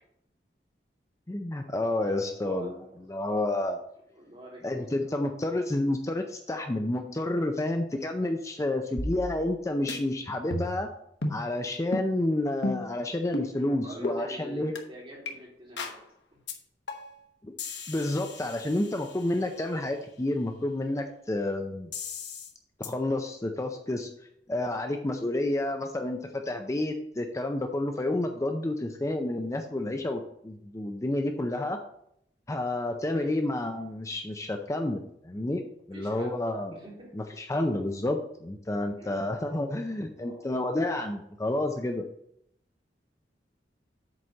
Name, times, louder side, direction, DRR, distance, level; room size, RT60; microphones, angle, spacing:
voice 1, 1.3-2.7 3.1-3.8 4.6-10.9 11.3-14.7 17.4-17.5 17.9-21.9 22.8-24.1 24.5-31.8 32.5-35.6 35.9-36.7 37.1-42.1, left 1 dB, 20° left, 5 dB, 0.5 m, -30 dB
voice 2, 2.2-2.9 4.1-5.1 13.6-15.9 16.3-16.4 33.1-33.3 35.9-36.3 36.7-37.1 39.0-39.2 40.1-40.6, right 1 dB, 35° right, -4 dB, 3.0 m, -46 dB
sound 1, 9.0-9.6 9.9-10.0 10.5-10.9 11.2-11.4 11.9-12.1 12.6-12.9 13.3-13.5 14.0-14.2 14.8-14.9 15.3-15.4 15.8-16.0 16.5-16.6 16.9-17.2 17.6-19.4 21.9-22.5 22.8-22.9, left 2 dB, 85° left, 1.2 m, -34 dB
7.6 x 4.2 x 6.4 m, 0.75 s
head